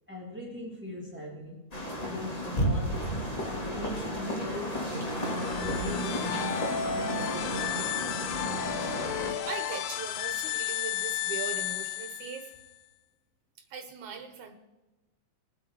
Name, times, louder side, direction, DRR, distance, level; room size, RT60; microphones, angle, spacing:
voice 1, 0.1-1.6 2.0-8.1, left 1 dB, 10° right, -3 dB, 0.7 m, -41 dB
sound 1, 1.7-9.3, equal, 20° left, 1.1 m, -32 dB
sound 2, 5.0-12.7, left 10 dB, 70° left, 1.7 m, -33 dB
voice 2, 9.2-12.5 13.7-14.5, right 7 dB, 75° right, 4 dB, 2.7 m, -40 dB
21.5 x 8.4 x 3.3 m, 1.1 s
omnidirectional pair, 3.4 m